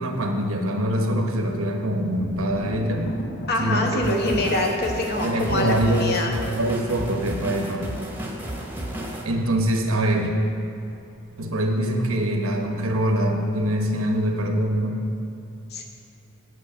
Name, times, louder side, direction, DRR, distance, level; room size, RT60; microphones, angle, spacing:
voice 1, 0.0-3.1 3.6-4.5 5.2-6.2 6.5-7.9 9.2-10.3 11.4-15.0, right 1 dB, 85° right, 3 dB, 1.1 m, -24 dB
Thunder, 2.3-12.0 12.2-12.9, left 1 dB, 75° left, 0.9 m, -41 dB
voice 2, 3.5-6.3 15.7-15.8, left 2 dB, 50° left, 1 dB, 1.1 m, -25 dB
sound 1, 4.0-9.2, right 1 dB, 10° right, 0.9 m, -33 dB
8.5 x 7.9 x 5.1 m, 2.8 s
head